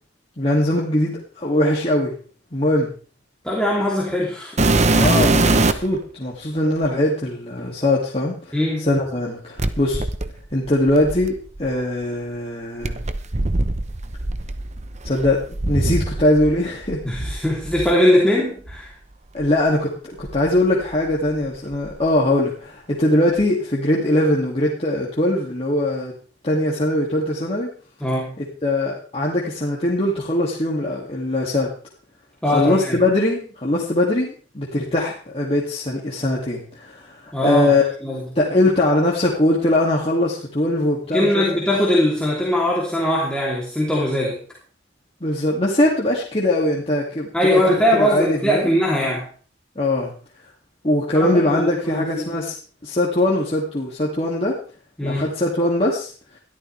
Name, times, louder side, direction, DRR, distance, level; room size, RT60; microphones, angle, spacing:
voice 1, 0.4-2.1 2.5-2.9 4.9-10.0 10.5-13.0 15.0-15.4 15.6-17.0 19.3-26.1 26.4-27.7 28.4-31.7 32.4-37.8 38.4-41.4 45.2-48.7 49.8-50.1 50.8-52.5 52.8-54.6 55.0-56.1, left 1 dB, 35° left, -4 dB, 2.5 m, -21 dB
voice 2, 3.4-5.1 8.5-8.9 17.0-18.9 28.0-28.3 32.4-33.0 37.3-37.7 38.0-38.2 41.1-44.4 47.3-49.3 51.1-52.3 55.0-55.3, left 1 dB, 5° left, -5 dB, 3.2 m, -21 dB
sound 1, 4.6-6.0 6.8-6.9 9.6-11.7 12.8-16.6 16.8-17.9 18.7-18.8 19.4-19.5 20.2-21.3 21.6-22.1 23.4-23.5, right 2 dB, 40° right, 1.0 m, -22 dB
21.5 x 13.0 x 3.4 m, 0.41 s
head